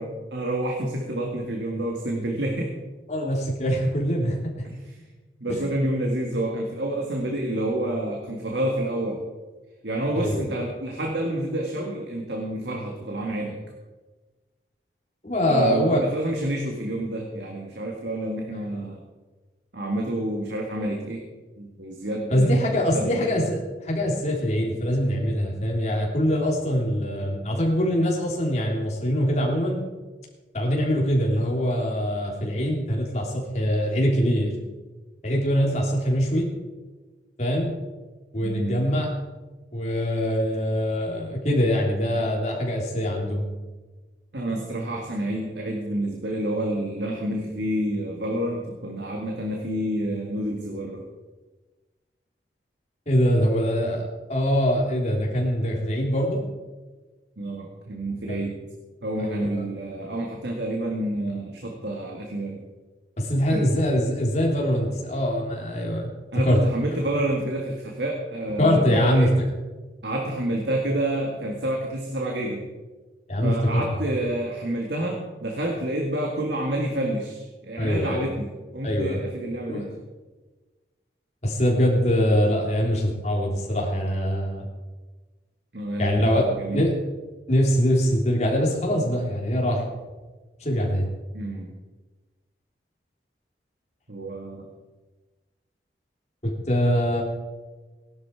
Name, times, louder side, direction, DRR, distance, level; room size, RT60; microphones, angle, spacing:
voice 1, 0.0-2.7 4.6-5.1 5.4-9.2 9.8-13.6 15.5-19.0 19.7-21.2 21.6-23.4 38.4-38.9 44.3-51.1 57.4-58.6 59.0-62.6 63.5-63.7 66.3-69.3 70.0-72.6 73.4-79.9 85.7-86.9 91.3-91.7 94.1-94.7, right 1 dB, 75° right, 1 dB, 1.9 m, -28 dB
voice 2, 3.1-4.7 5.5-5.6 10.1-10.5 15.2-16.0 18.6-18.8 22.3-29.8 30.5-34.5 35.2-36.5 37.4-37.7 38.3-39.1 39.7-43.4 53.1-56.4 58.3-58.4 59.2-59.5 63.2-66.6 68.6-69.3 73.3-73.9 77.8-78.2 78.8-79.2 79.7-79.9 81.4-84.7 86.0-86.4 86.7-86.9 87.5-89.8 90.6-91.1 96.4-97.2, equal, 40° left, -1 dB, 3.4 m, -23 dB
17.5 x 11.5 x 4.8 m, 1.2 s
head